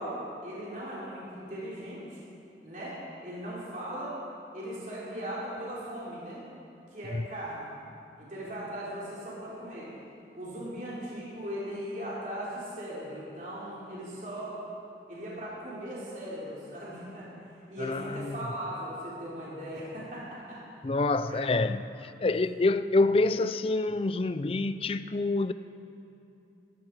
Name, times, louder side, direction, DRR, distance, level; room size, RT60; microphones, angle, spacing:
voice 1, 0.0-2.2 2.6-4.2 4.5-6.4 6.9-7.7 8.2-9.9 10.3-14.5 15.1-20.6 21.2-21.4, equal, 45° right, 3.5 m, -38 dB
voice 2, 17.8-18.4 20.8-25.5, left 2 dB, 30° left, 0.4 m, -27 dB
16.5 x 14.5 x 4.7 m
head